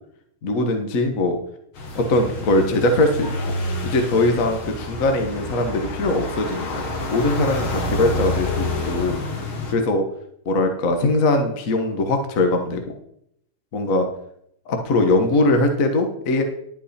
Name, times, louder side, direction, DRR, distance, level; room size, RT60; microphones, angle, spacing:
voice 1, 0.4-1.4 1.9-3.3 3.8-6.8 7.1-9.2 9.7-10.1 10.4-12.8 13.7-14.1 14.7-16.4, left 2 dB, 45° left, 4 dB, 1.5 m, -21 dB
sound 1, 1.7-9.7, left 2 dB, 75° left, 2.7 m, -28 dB
11.5 x 8.4 x 4.3 m, 0.71 s
omnidirectional pair, 2.4 m